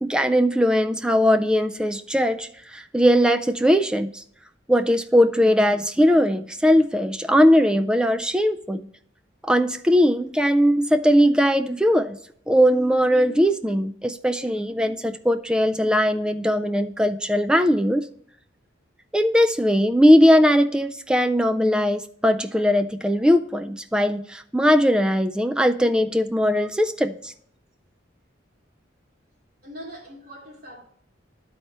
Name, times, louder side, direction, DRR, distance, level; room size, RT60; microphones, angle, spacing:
voice 1, 0.0-4.2 4.7-8.9 9.4-12.2 12.5-18.0 19.1-27.3, equal, 5° right, 0.3 m, -19 dB
voice 2, 29.6-30.8, equal, 50° right, 2.6 m, -41 dB
12.0 x 4.2 x 3.3 m
head